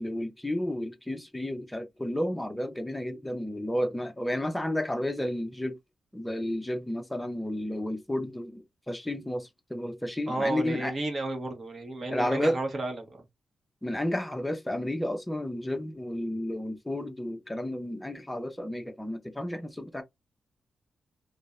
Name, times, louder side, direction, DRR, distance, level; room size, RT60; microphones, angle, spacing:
voice 1, 0.0-5.8 6.1-10.9 12.1-12.6 13.8-20.0, left 1 dB, 5° left, 0.5 m, -32 dB
voice 2, 10.3-13.2, right 2 dB, 35° right, 0.8 m, -32 dB
3.0 x 2.0 x 2.3 m
wide cardioid pair, 145°, 0 cm